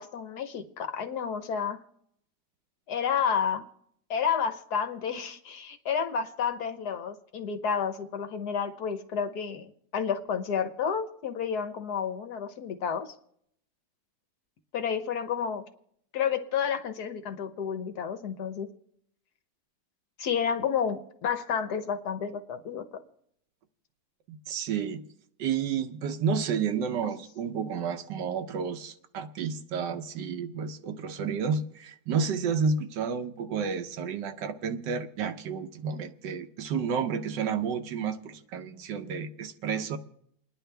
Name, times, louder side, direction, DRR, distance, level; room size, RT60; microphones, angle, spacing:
voice 1, 0.0-1.8 2.9-3.6 4.1-13.1 14.7-15.6 16.1-18.7 20.2-22.8, left 7 dB, 65° left, 1.4 m, -30 dB
voice 2, 24.3-25.0 25.4-40.0, right 6 dB, 75° right, 1.5 m, -31 dB
29.5 x 10.0 x 3.4 m
omnidirectional pair, 1.9 m